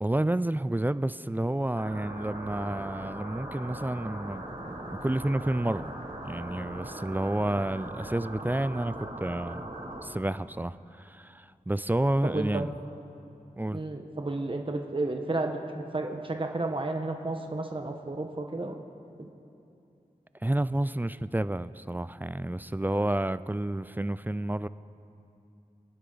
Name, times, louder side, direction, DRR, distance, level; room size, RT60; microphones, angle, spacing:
voice 1, 0.0-5.9 6.2-9.6 10.0-12.7 13.6-13.8 20.4-24.7, right 1 dB, 10° right, 15 dB, 0.3 m, -30 dB
sound 1, 1.7-10.0, right 1 dB, 80° right, 3.4 m, -40 dB
voice 2, 12.2-12.7 13.7-18.7 19.2-19.3, right 2 dB, 35° right, 3 dB, 1.1 m, -32 dB
26.5 x 9.9 x 4.0 m, 2.7 s
wide cardioid pair, 45°, 15 cm